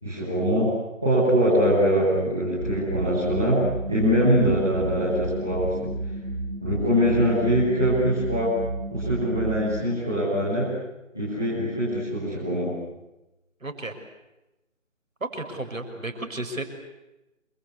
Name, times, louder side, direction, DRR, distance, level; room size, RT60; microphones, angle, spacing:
voice 1, 0.0-0.7 1.0-3.6 3.9-5.9 6.6-8.5 8.9-10.7 11.1-12.7, equal, ahead, -11 dB, 0.9 m, -23 dB
sound 1, 2.6-9.8, right 2 dB, 60° right, 7.4 m, -32 dB
voice 2, 13.6-13.9 15.2-16.6, right 2 dB, 85° right, 6 dB, 6.3 m, -33 dB
28.0 x 25.5 x 8.3 m, 0.98 s
figure-of-eight pair, 165°, 39 cm